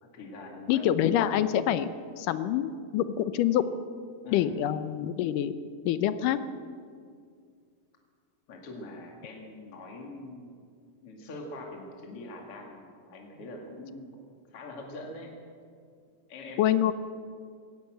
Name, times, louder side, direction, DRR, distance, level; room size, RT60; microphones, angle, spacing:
voice 1, 0.0-0.8 4.2-4.5 8.5-10.5 11.0-14.2 14.5-15.3 16.3-16.6, left 2 dB, 45° left, 0 dB, 3.2 m, -43 dB
voice 2, 0.7-3.7 4.3-5.5 5.9-6.4 16.6-16.9, left 11 dB, 85° left, 12 dB, 2.4 m, -26 dB
20.0 x 17.5 x 7.8 m, 2.2 s
omnidirectional pair, 3.7 m